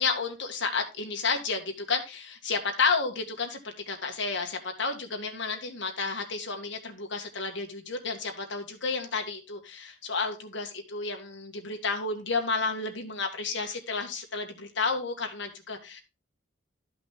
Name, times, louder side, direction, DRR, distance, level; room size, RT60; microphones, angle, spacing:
voice 1, 0.0-16.0, left 4 dB, 65° left, 1.9 m, -31 dB
12.5 x 5.7 x 3.6 m
head